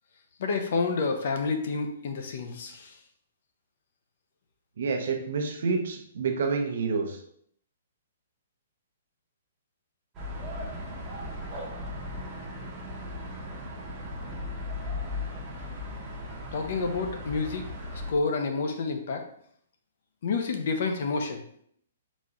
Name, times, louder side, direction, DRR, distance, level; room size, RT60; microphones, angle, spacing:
voice 1, 0.4-3.0 16.5-17.7 18.1-19.3 20.2-21.4, left 4 dB, 45° left, 5 dB, 0.6 m, -29 dB
voice 2, 4.8-7.2 15.9-16.0, right 4 dB, 55° right, 4 dB, 0.8 m, -28 dB
sound 1, 10.1-18.1, left 1 dB, 15° right, 0.8 m, -37 dB
4.1 x 3.0 x 3.7 m, 0.66 s
hypercardioid pair, 175°, 0 cm